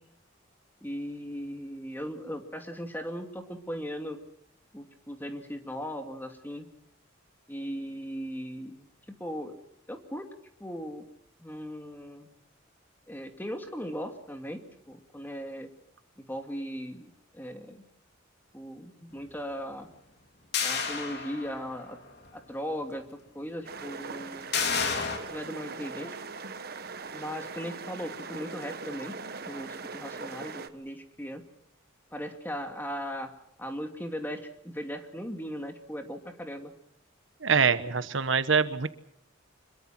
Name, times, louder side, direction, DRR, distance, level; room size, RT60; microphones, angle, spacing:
voice 1, 0.8-4.2 4.7-6.7 7.5-8.9 9.2-9.6 9.9-10.3 10.6-11.0 11.4-12.3 13.1-15.7 16.2-17.8 18.5-19.9 20.6-22.0 22.3-23.0 23.3-24.5 24.9-26.2 27.1-29.2 29.4-31.4 32.1-33.3 33.6-36.7, equal, 10° left, 5 dB, 2.5 m, -38 dB
sound 1, 20.5-21.8 22.2-22.3 24.5-25.2, left 5 dB, 55° left, 3.6 m, -30 dB
sound 2, 23.6-30.7, right 4 dB, 50° right, 1.3 m, -40 dB
voice 2, 37.4-38.9, right 5 dB, 70° right, 12 dB, 1.2 m, -24 dB
26.0 x 22.5 x 6.0 m, 0.74 s
head